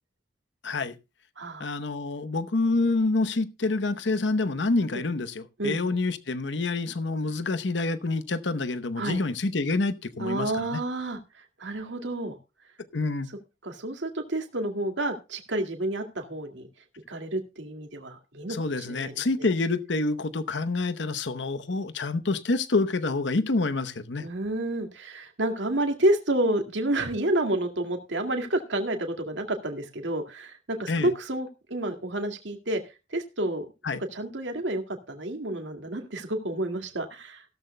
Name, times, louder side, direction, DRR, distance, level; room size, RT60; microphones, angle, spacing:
voice 1, 0.6-1.0 1.6-10.8 12.9-13.3 18.5-24.3 30.9-31.1 33.8-34.0, left 3 dB, 65° left, 0.9 m, -27 dB
voice 2, 1.4-1.7 5.6-5.9 9.0-9.2 10.2-12.4 13.6-16.7 17.1-19.3 24.2-32.8 33.1-33.6 34.1-37.4, right 1 dB, 70° right, 2.2 m, -29 dB
16.0 x 13.5 x 2.2 m
head